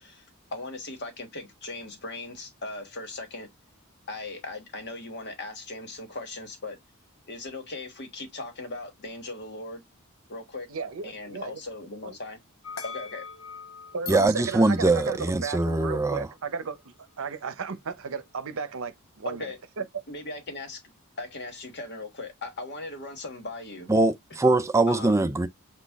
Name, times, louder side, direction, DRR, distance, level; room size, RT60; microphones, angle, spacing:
voice 1, 0.0-3.5 4.1-6.8 7.3-9.8 10.3-10.7 11.0-12.4 12.8-13.3 19.2-19.6 20.1-23.9 24.9-25.3, left 2 dB, 55° left, 1.4 m, -38 dB
voice 2, 10.7-11.6 12.0-12.2 13.9-19.5 19.8-19.9, right 5 dB, 65° right, 0.7 m, -34 dB
sound 1, 12.6-15.9, left 5 dB, 75° left, 0.7 m, -42 dB
voice 3, 14.1-16.3 23.9-25.5, right 2 dB, 15° right, 0.4 m, -22 dB
6.1 x 2.4 x 3.5 m
head